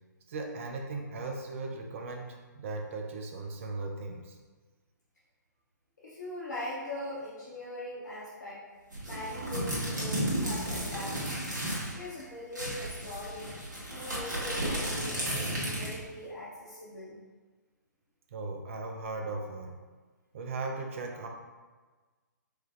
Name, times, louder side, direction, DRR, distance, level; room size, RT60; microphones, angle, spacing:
voice 1, 0.3-4.4 18.3-19.8 20.3-21.3, right 3 dB, 40° right, 3 dB, 0.5 m, -37 dB
voice 2, 6.0-8.6 9.0-11.2 11.8-13.6 13.9-17.2, left 1 dB, 60° left, -7 dB, 1.0 m, -41 dB
sound 1, 8.9-11.9 12.2-12.3 12.5-16.1, right 1 dB, 65° right, 1.4 m, -33 dB
4.8 x 2.3 x 2.9 m, 1.3 s
figure-of-eight pair, 125°, 10 cm